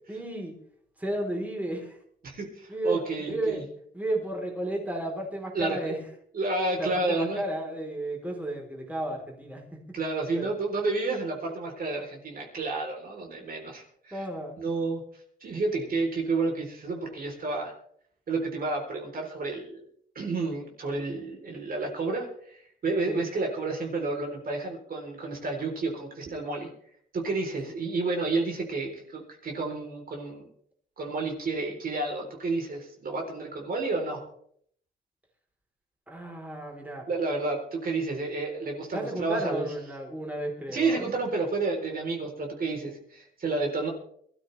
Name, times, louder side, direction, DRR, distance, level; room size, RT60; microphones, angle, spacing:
voice 1, 0.1-0.5 1.0-2.0 2.7-3.0 3.3-3.7 3.9-6.0 6.8-9.8 10.3-10.5 14.1-14.6 23.0-23.2 36.1-37.1 38.9-41.1, right 1 dB, 10° right, 0 dB, 4.0 m, -33 dB
voice 2, 2.2-3.6 5.5-5.9 6.3-7.4 9.9-14.3 14.6-15.0 15.4-17.7 18.3-19.9 20.2-26.7 27.1-30.5 31.0-34.3 37.1-39.7 40.7-43.9, right 3 dB, 50° right, 1 dB, 3.9 m, -30 dB
22.0 x 13.5 x 3.4 m, 0.63 s
cardioid pair, 115°, 19 cm